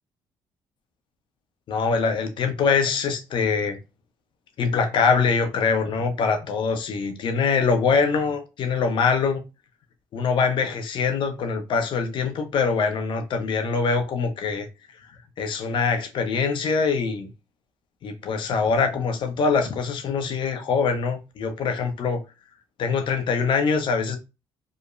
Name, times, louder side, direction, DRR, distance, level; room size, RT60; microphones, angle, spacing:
voice 1, 1.7-3.8 4.6-9.4 10.1-14.7 15.4-17.3 18.0-22.2 22.8-24.2, left 5 dB, 60° left, 0.6 m, -23 dB
2.9 x 2.1 x 2.4 m
hypercardioid pair, 60°, 10 cm